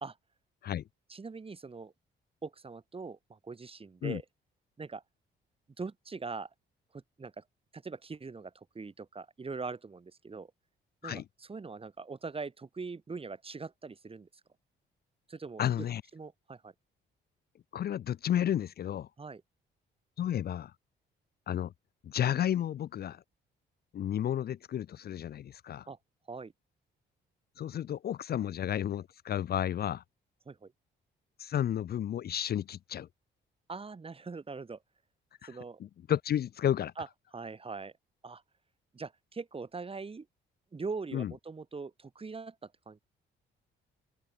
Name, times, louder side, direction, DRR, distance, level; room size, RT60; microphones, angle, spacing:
voice 1, 1.1-1.9 2.4-4.2 4.8-5.0 5.8-6.5 6.9-7.4 7.7-10.5 11.0-14.3 15.3-15.9 16.1-16.7 19.2-19.4 25.9-26.0 26.3-26.5 30.5-30.7 33.7-34.8 35.4-35.8 37.0-37.1 37.3-37.9 38.2-38.4 38.9-40.3 40.7-43.0, right 4 dB, 30° right, 2.9 m, -42 dB
voice 2, 15.6-16.0 17.7-19.1 20.2-20.7 21.5-21.7 22.0-23.2 23.9-25.9 27.6-30.0 31.4-33.1 35.4-36.9 41.1-41.3, left 10 dB, 50° left, 0.6 m, -32 dB
open air
cardioid pair, 90°, 20 cm